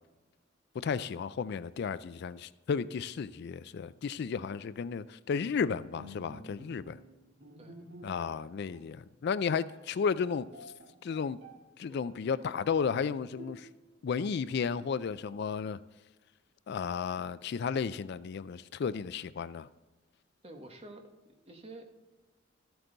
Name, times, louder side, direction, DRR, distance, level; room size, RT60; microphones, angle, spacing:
voice 1, 0.7-7.0 8.0-10.4 11.0-11.4 11.8-13.7 14.0-15.8 16.7-19.7, left 6 dB, 55° left, 0.3 m, -33 dB
Bowed string instrument, 5.4-8.4 8.7-8.9 9.4-9.5 9.7-11.6 11.9-12.7 13.4-14.0, right 1 dB, 55° right, 2.2 m, -51 dB
voice 2, 20.4-21.1 21.4-21.9, right 2 dB, 30° right, 1.3 m, -48 dB
13.5 x 8.0 x 3.9 m
head